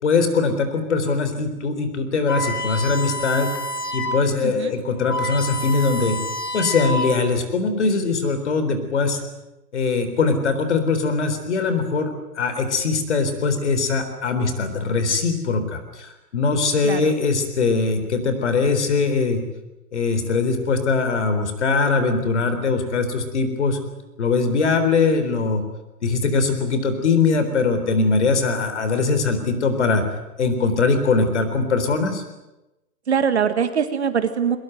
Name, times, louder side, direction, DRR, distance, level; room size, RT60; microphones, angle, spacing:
voice 1, 0.0-3.5 3.9-6.2 6.5-9.2 9.7-19.4 19.9-23.8 24.2-25.6 26.0-30.0 30.4-32.2, left 4 dB, 45° left, 9 dB, 3.9 m, -21 dB
sound 1, 2.3-4.3 4.7-4.8 5.0-7.4, left 1 dB, 75° left, 3.6 m, -28 dB
voice 2, 4.4-4.7 16.8-17.1 33.1-34.6, right 7 dB, 45° right, 10 dB, 1.8 m, -22 dB
22.0 x 21.0 x 9.3 m, 1.0 s
hypercardioid pair, 180°, 47 cm